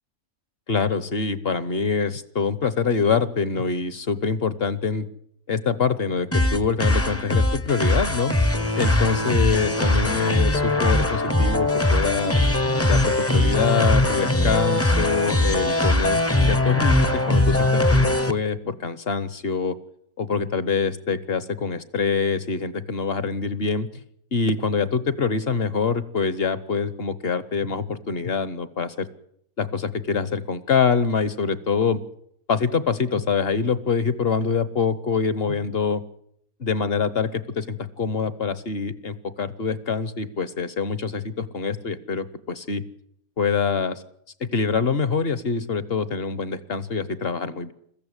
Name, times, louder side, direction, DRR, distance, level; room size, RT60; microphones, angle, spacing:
voice 1, 0.7-5.1 5.5-8.3 8.8-12.4 12.8-19.8 20.2-23.9 24.3-29.1 29.6-32.0 32.5-36.0 36.6-42.8 43.4-44.0 44.4-47.7, left 5 dB, 45° left, 15 dB, 1.2 m, -25 dB
sound 1, 6.3-18.3, left 1 dB, 10° left, 0.8 m, -21 dB
21.5 x 15.0 x 9.7 m, 0.70 s
omnidirectional pair, 1.5 m